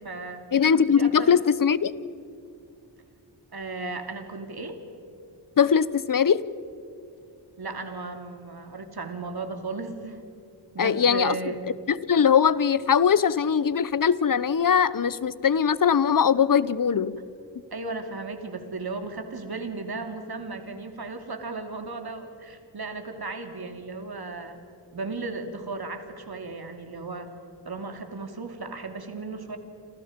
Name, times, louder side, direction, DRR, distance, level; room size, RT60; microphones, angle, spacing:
voice 1, 0.0-0.4 0.9-1.3 3.5-4.8 7.6-10.2 10.7-11.6 17.7-24.6 24.9-27.3 27.6-29.6, right 3 dB, 55° right, 6 dB, 2.9 m, -35 dB
voice 2, 0.5-1.9 5.6-6.4 10.8-11.3 11.9-17.2, left 7 dB, 45° left, 18 dB, 0.8 m, -21 dB
29.0 x 26.0 x 5.2 m, 2.5 s
wide cardioid pair, 90°, 44 cm